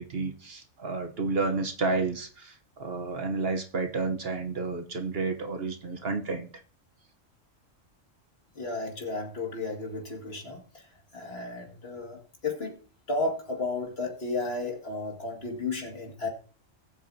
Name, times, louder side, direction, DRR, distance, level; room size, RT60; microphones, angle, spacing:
voice 1, 0.0-6.5, right 3 dB, 50° right, 6 dB, 1.2 m, -31 dB
voice 2, 8.5-10.9 11.1-12.8 13.1-16.3, left 3 dB, 50° left, 2 dB, 2.3 m, -33 dB
19.5 x 8.3 x 2.8 m, 0.42 s
omnidirectional pair, 1.3 m